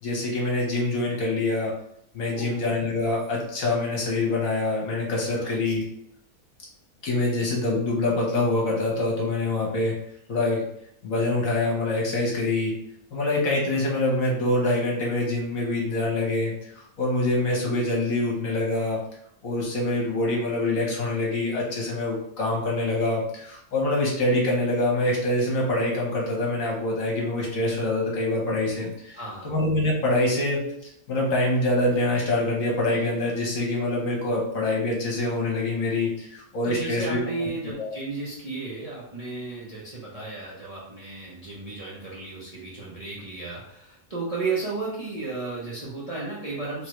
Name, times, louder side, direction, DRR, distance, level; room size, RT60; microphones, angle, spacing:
voice 1, 0.0-1.7 2.1-5.8 7.0-9.9 10.3-10.7 11.0-12.7 13.1-19.0 19.4-29.2 29.4-30.6 31.1-37.5 37.8-38.0, left 2 dB, 60° left, -2 dB, 1.4 m, -25 dB
voice 2, 2.3-2.6 5.3-5.6 29.1-29.5 36.6-46.9, right 3 dB, 35° right, -6 dB, 0.6 m, -34 dB
3.6 x 3.2 x 3.1 m, 0.74 s
omnidirectional pair, 1.6 m